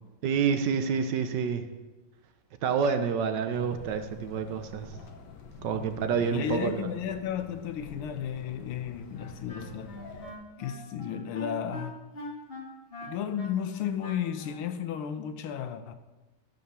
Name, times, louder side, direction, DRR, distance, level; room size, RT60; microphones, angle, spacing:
voice 1, 0.2-1.6 2.6-4.9 5.6-6.9, right 6 dB, 65° right, 1.3 m, -28 dB
sound 1, 3.5-10.3, left 4 dB, 60° left, 1.5 m, -47 dB
voice 2, 5.7-10.0 10.6-12.1 13.0-15.9, left 9 dB, 90° left, 1.7 m, -34 dB
Wind instrument woodwind instrument, 9.1-14.7, left 1 dB, 30° left, 1.7 m, -43 dB
13.5 x 5.3 x 6.9 m
omnidirectional pair, 2.3 m